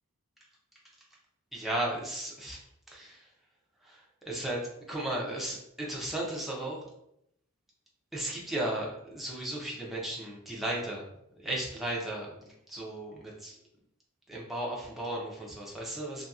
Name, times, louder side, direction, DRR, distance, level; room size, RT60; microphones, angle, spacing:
voice 1, 1.5-2.6 2.9-3.2 3.9-4.6 4.9-6.9 8.1-11.1 11.4-13.6 14.3-16.3, right 1 dB, ahead, -4 dB, 0.5 m, -35 dB
2.7 x 2.7 x 2.4 m, 0.77 s
head